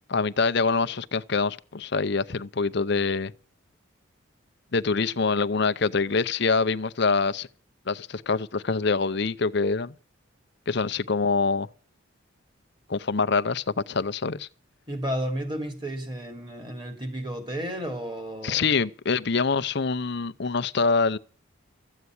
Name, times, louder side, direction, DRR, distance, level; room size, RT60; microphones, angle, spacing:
voice 1, 0.1-3.3 4.7-7.5 7.9-9.9 10.7-11.7 12.9-14.5 18.4-21.2, left 4 dB, 55° left, 0.7 m, -25 dB
voice 2, 14.9-18.7, equal, 20° right, 3.3 m, -32 dB
14.5 x 8.3 x 9.4 m
head